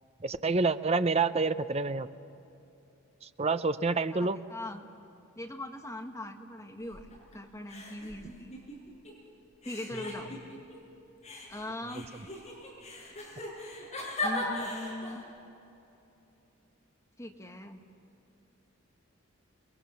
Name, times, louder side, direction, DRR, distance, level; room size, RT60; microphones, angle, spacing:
voice 1, 0.2-2.1 3.2-4.4, right 3 dB, 30° right, 12 dB, 0.6 m, -28 dB
voice 2, 4.1-4.9 5.3-8.6 9.6-10.4 11.5-12.1 14.2-15.2 17.2-17.8, left 1 dB, 15° left, 3 dB, 1.5 m, -41 dB
sound 1, 6.8-7.4 7.7-9.1 9.6-10.8 11.2-15.2, left 2 dB, 30° left, 6.3 m, -38 dB
28.5 x 21.0 x 7.1 m, 2.8 s
head